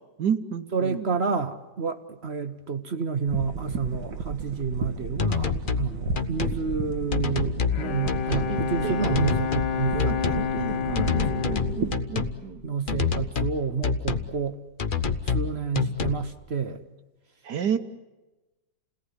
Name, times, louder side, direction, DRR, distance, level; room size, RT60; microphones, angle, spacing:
voice 1, 0.2-1.1 8.3-9.2 9.9-12.6 17.4-17.8, right 8 dB, 65° right, 7 dB, 1.6 m, -31 dB
voice 2, 0.7-11.8 12.6-14.6 15.2-16.9, right 5 dB, 45° right, 9 dB, 1.0 m, -30 dB
sound 1, 3.3-12.0, right 4 dB, 90° right, 2.1 m, -34 dB
sound 2, 4.6-4.7 5.2-5.9 6.2-6.6 7.1-7.8 8.1-8.5 9.0-9.7 10.0-10.5 10.9-12.4 12.9-13.5 13.8-14.3 14.8-15.5 15.7-16.2, left 5 dB, 40° left, 0.8 m, -27 dB
Bowed string instrument, 7.5-13.2, left 7 dB, 65° left, 1.8 m, -30 dB
29.0 x 18.0 x 9.9 m, 1.1 s
omnidirectional pair, 2.0 m